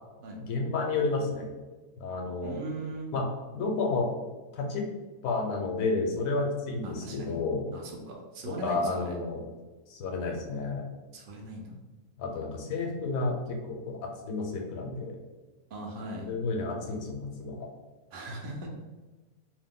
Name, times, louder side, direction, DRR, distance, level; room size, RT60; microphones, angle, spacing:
voice 1, 0.4-1.5 2.0-2.5 3.1-3.3 3.5-4.1 4.5-4.8 5.2-7.7 8.5-9.4 9.9-10.8 12.2-15.2 16.2-17.7, left 3 dB, 70° left, 1 dB, 1.0 m, -31 dB
voice 2, 2.4-3.1 6.8-7.3 7.7-9.2 11.1-11.7 15.7-16.3 18.1-18.7, right 2 dB, 65° right, -1 dB, 0.5 m, -39 dB
2.7 x 2.1 x 3.5 m, 1.2 s
omnidirectional pair, 1.6 m